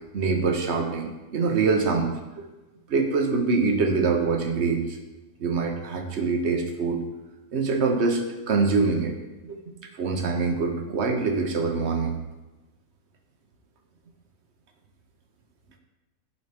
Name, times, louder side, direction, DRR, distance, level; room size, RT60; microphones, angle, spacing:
voice 1, 0.1-2.5 2.9-5.0 5.4-7.0 7.5-8.2 8.5-9.2 9.4-9.6 9.9-12.2, right 4 dB, 50° right, 4 dB, 0.9 m, -24 dB
12.0 x 4.2 x 3.4 m, 1.1 s
omnidirectional pair, 1.9 m